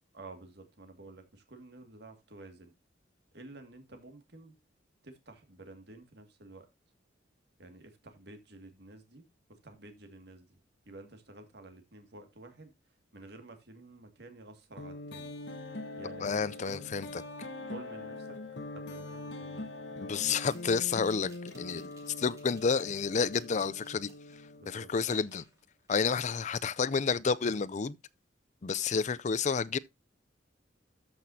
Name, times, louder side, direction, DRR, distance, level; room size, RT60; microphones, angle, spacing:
voice 1, 0.1-2.7 3.3-4.5 5.0-6.7 7.6-9.2 9.6-10.6 10.9-12.7 13.1-15.3 16.0-16.9 17.7-18.4 18.7-19.7 24.6-24.9, right 2 dB, 60° right, 2.2 m, -51 dB
sound 1, 14.8-25.3, left 2 dB, 65° left, 1.3 m, -43 dB
voice 2, 16.2-17.2 20.0-21.9 22.2-24.1 24.7-25.4 25.9-28.0 28.6-29.8, left 5 dB, 40° left, 0.4 m, -30 dB
sound 2, 18.6-18.7 20.3-24.5 25.0-26.4 26.6-27.0, right 2 dB, 20° right, 2.8 m, -59 dB
13.5 x 6.0 x 2.7 m
head